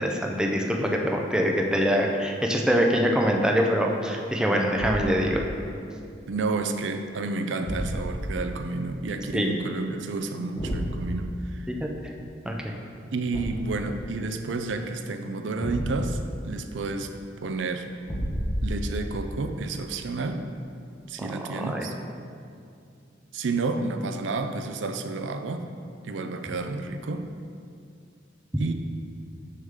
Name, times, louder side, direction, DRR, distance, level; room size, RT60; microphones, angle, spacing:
voice 1, 0.0-5.4 9.3-9.5 11.7-12.1 12.5-12.7 21.2-21.9, equal, 5° right, 0 dB, 0.5 m, -24 dB
Thump thud, 4.8-5.3 7.6-8.3 10.6-11.0 13.3-13.8 15.6-16.3 18.0-19.0, equal, 15° left, 0.8 m, -30 dB
voice 2, 6.3-11.7 13.1-17.1 17.4-17.9 18.6-20.4 21.1-22.0 23.3-25.7 26.0-27.3 28.6-28.7, right 3 dB, 75° right, 7 dB, 0.5 m, -30 dB
7.0 x 6.4 x 3.7 m, 2.5 s
head